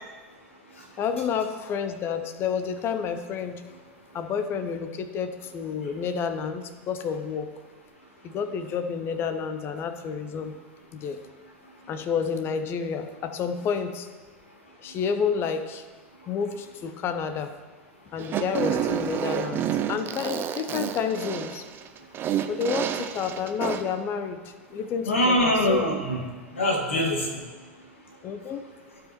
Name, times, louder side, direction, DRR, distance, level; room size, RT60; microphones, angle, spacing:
voice 1, 1.0-3.6 4.1-7.5 8.2-10.6 10.9-11.2 11.9-14.1 14.8-15.9 16.3-17.5 18.1-21.6 22.5-25.9 28.2-28.6, left 6 dB, 35° left, 10 dB, 0.7 m, -30 dB
Fart, 18.2-24.0, right 9 dB, 30° right, 0.5 m, -29 dB
voice 2, 25.1-26.2 26.5-27.4, equal, 75° left, 0 dB, 1.7 m, -23 dB
14.5 x 5.0 x 3.0 m, 1.4 s
figure-of-eight pair, 85°, 7 cm